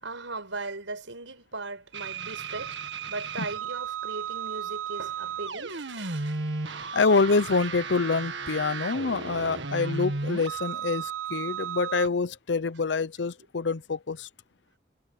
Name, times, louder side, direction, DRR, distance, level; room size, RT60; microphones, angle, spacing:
voice 1, 0.0-6.5, right 3 dB, 90° right, 5.9 m, -38 dB
sound 1, 1.9-12.1, right 5 dB, 70° right, 1.8 m, -34 dB
voice 2, 6.9-14.3, left 4 dB, 65° left, 0.7 m, -26 dB
head